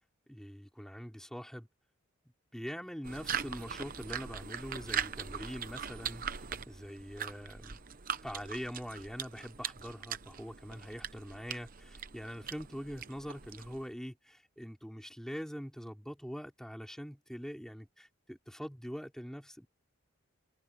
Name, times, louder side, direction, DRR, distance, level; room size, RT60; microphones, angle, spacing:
voice 1, 0.3-1.7 2.5-7.8 8.2-19.7, equal, ahead, 5.3 m, -43 dB
sound 1, 3.0-13.9, right 7 dB, 40° right, 0.9 m, -41 dB
head